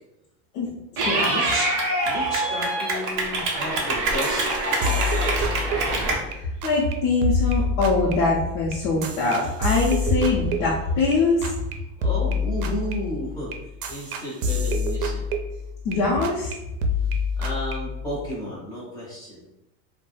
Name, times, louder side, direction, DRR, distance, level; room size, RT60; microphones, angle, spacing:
voice 1, 0.5-1.4 6.3-11.5 15.8-16.5, left 3 dB, 60° left, -6 dB, 0.7 m, -23 dB
Clapping / Cheering, 1.0-6.1, right 2 dB, 35° right, 0.4 m, -25 dB
voice 2, 1.2-1.7 2.0-4.5 4.7-5.3 12.0-13.5 13.9-15.3 17.0-17.1 17.4-19.5, equal, 10° left, -7 dB, 0.6 m, -33 dB
sound 1, 4.2-6.4 6.6-6.9 7.2-11.2 11.4-11.7 12.0-16.0 16.2-16.5 16.8-18.3, left 3 dB, 85° right, 0.6 m, -27 dB
2.2 x 2.1 x 3.1 m, 0.88 s
supercardioid pair, 160°, 46 cm